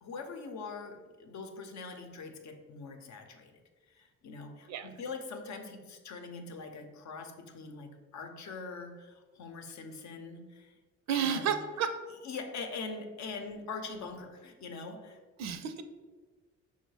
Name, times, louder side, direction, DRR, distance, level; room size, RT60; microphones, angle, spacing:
voice 1, 0.0-3.6 3.9-10.8 11.1-11.5 12.2-15.2, left 4 dB, 65° left, 5 dB, 0.7 m, -43 dB
voice 2, 11.1-12.0 15.4-15.8, right 7 dB, 65° right, 9 dB, 0.5 m, -31 dB
5.4 x 2.1 x 4.6 m, 1.3 s
cardioid pair, 90°, 30 cm